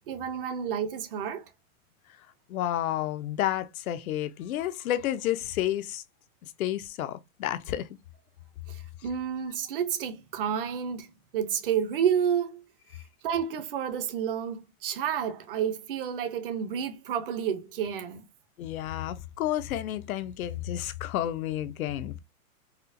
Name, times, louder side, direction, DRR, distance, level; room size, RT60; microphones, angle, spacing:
voice 1, 0.1-1.5 8.7-12.6 13.2-18.2, right 8 dB, 40° right, 0.5 m, -30 dB
voice 2, 2.5-6.0 6.4-7.9 18.6-22.2, left 12 dB, 75° left, 0.6 m, -31 dB
4.3 x 2.0 x 2.5 m
supercardioid pair, 160°, 42 cm